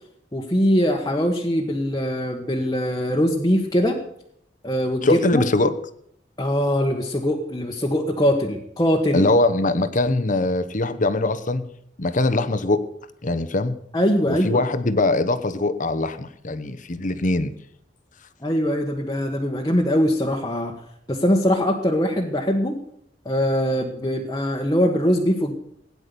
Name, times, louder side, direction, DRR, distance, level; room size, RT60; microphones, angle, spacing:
voice 1, 0.3-4.0 4.6-5.4 6.4-9.2 13.9-14.6 18.4-20.7 21.1-22.8 23.2-25.5, equal, 20° left, -1 dB, 1.3 m, -22 dB
voice 2, 5.0-5.7 9.1-11.7 12.0-12.8 13.2-13.8 14.3-17.5, left 2 dB, 45° left, 11 dB, 1.0 m, -22 dB
17.0 x 9.8 x 6.9 m, 0.69 s
head